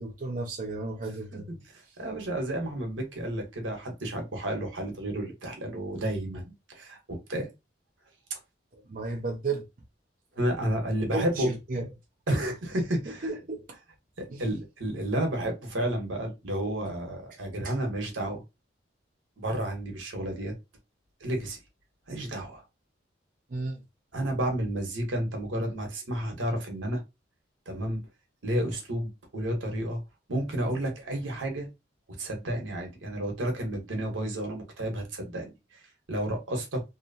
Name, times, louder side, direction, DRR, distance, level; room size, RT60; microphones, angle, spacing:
voice 1, 0.0-1.5 8.7-9.6 11.1-11.9 13.1-13.6 14.3-14.4 17.6-17.7 23.5-23.8, right 3 dB, 45° right, 0.5 m, -33 dB
voice 2, 2.0-6.4 6.7-7.5 8.3-8.4 10.4-11.5 12.3-13.2 14.2-18.4 19.4-20.5 21.2-21.6 22.1-22.6 24.1-27.0 27.7-28.0 28.4-30.0 30.3-31.7 32.2-35.8 36.1-36.8, right 1 dB, 85° right, 1.0 m, -31 dB
2.8 x 2.0 x 2.6 m
head